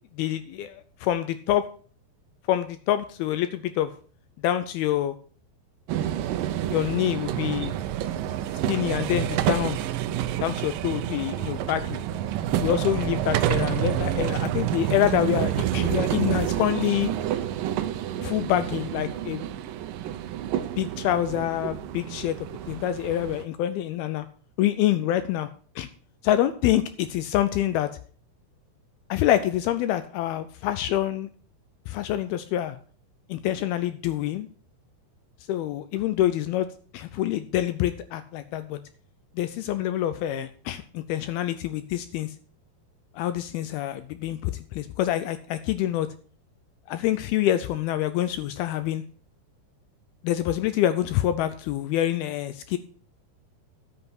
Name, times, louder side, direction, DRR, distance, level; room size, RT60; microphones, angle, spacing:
voice 1, 0.1-1.7 2.5-3.9 4.4-5.2 6.7-7.7 8.7-9.8 10.4-12.0 12.6-17.1 18.2-19.4 20.8-24.3 24.6-25.5 25.8-25.9 26.2-27.9 29.1-31.3 31.9-32.8 33.3-34.5 35.5-36.7 36.9-38.8 39.4-42.3 43.1-46.1 46.9-49.0 50.2-52.8, left 12 dB, 80° left, 11 dB, 2.3 m, -26 dB
sound 1, 5.9-23.4, right 11 dB, 80° right, 2.0 m, -28 dB
10.5 x 7.9 x 6.0 m, 0.42 s
omnidirectional pair, 4.9 m